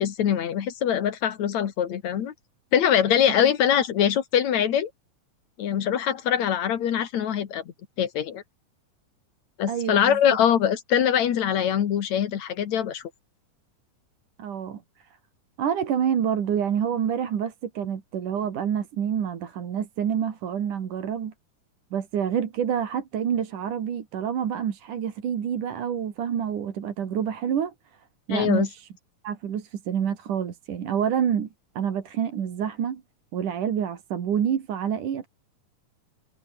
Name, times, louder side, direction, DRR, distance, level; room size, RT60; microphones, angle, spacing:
voice 1, 0.0-2.3 2.7-4.9 5.6-7.6 8.0-8.4 9.6-13.0 28.3-28.7, left 9 dB, 65° left, 2.9 m, -23 dB
voice 2, 9.7-10.2 14.4-15.1 15.6-21.3 21.9-27.7 28.3-28.9 29.2-31.5 31.8-33.0 33.3-35.3, right 8 dB, 75° right, 3.9 m, -27 dB
omnidirectional pair, 3.7 m